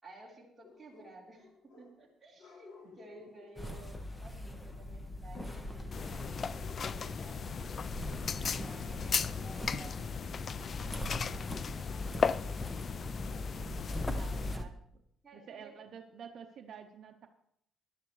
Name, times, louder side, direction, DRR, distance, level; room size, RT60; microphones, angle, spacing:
voice 1, 0.0-7.4 8.6-11.6 11.8-12.5 13.3-14.3 15.2-15.8, right 2 dB, 15° right, -4 dB, 3.6 m, -55 dB
sound 1, 0.6-2.1 2.4-3.6 5.4-7.4 7.7-8.0 8.6-9.0 11.8-13.1, left 4 dB, 75° left, 2.7 m, -58 dB
sound 2, 3.6-14.6, left 1 dB, 15° left, 1.0 m, -41 dB
sound 3, 5.9-14.5, left 6 dB, 40° left, 0.3 m, -36 dB
voice 2, 14.1-14.7 15.3-17.3, right 7 dB, 55° right, 5 dB, 0.8 m, -50 dB
17.5 x 11.5 x 3.2 m, 0.74 s
cardioid pair, 125°, 0 cm